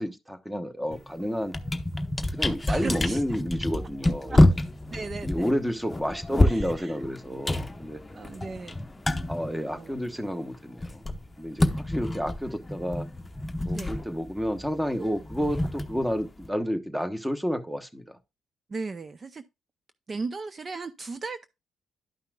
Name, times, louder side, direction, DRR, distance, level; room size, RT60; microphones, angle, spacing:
voice 1, 0.0-1.5 2.3-4.5 5.2-8.0 9.3-11.0 11.4-13.1 13.6-18.2, equal, 5° right, 1.0 m, -30 dB
sound 1, 0.9-1.1 1.4-10.3 10.5-16.5, left 1 dB, 20° left, 0.8 m, -27 dB
voice 2, 2.7-3.2 4.3-4.4 4.9-5.3 6.5-6.9 8.1-8.8 9.7-9.9 11.6-11.8 13.7-13.9 18.7-19.4 20.1-21.5, right 4 dB, 35° right, 0.5 m, -36 dB
11.5 x 5.6 x 2.3 m
cardioid pair, 90°, 0 cm